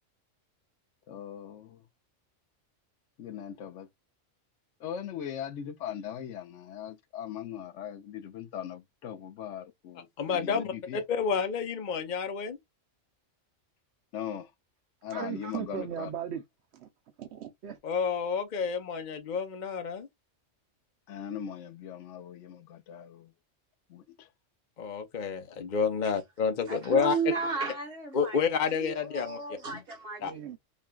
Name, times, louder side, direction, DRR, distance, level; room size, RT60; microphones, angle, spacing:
voice 1, 1.1-1.9 3.2-3.9 4.8-11.0 14.1-14.5 15.0-16.1 21.1-23.3 23.9-24.3, left 9 dB, 75° left, 0.9 m, -40 dB
voice 2, 10.2-12.6 17.8-20.1 24.8-27.2 28.1-29.6 30.2-30.3, left 6 dB, 45° left, 0.8 m, -29 dB
voice 3, 15.1-16.4 16.7-16.9 17.2-17.8 30.2-30.6, right 9 dB, 65° right, 0.8 m, -37 dB
voice 4, 26.7-28.4 28.8-30.4, right 5 dB, 50° right, 1.5 m, -34 dB
5.4 x 2.5 x 2.3 m
omnidirectional pair, 1.3 m